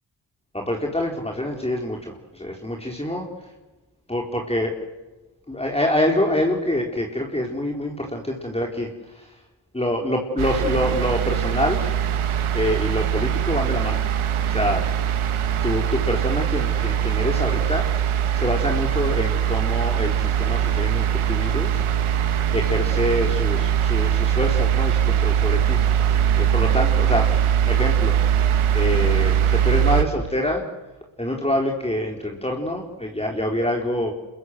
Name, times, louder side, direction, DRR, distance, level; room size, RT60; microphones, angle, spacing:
voice 1, 0.5-3.3 4.1-4.9 5.5-9.4 9.7-12.1 12.5-14.0 14.4-14.8 15.6-21.8 22.5-25.8 26.4-27.3 27.7-28.2 28.7-30.6 31.2-34.1, left 1 dB, 10° left, 0 dB, 4.4 m, -26 dB
sound 1, 10.4-30.0, right 9 dB, 85° right, 2.0 m, -21 dB
26.5 x 22.5 x 8.1 m, 1.2 s
cardioid pair, 50°, 48 cm